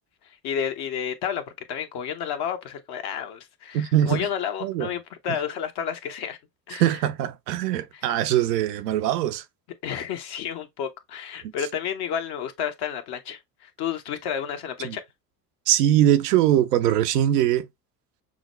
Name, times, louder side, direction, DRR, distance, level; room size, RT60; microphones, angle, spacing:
voice 1, 0.2-6.4 6.7-6.8 7.9-8.0 9.8-15.0, left 8 dB, 55° left, 1.1 m, -31 dB
voice 2, 3.7-4.3 4.6-4.9 6.7-9.4 11.4-11.5 14.8-15.0 15.7-17.7, right 12 dB, 80° right, 0.7 m, -22 dB
6.1 x 2.2 x 3.0 m
hypercardioid pair, 65°, 47 cm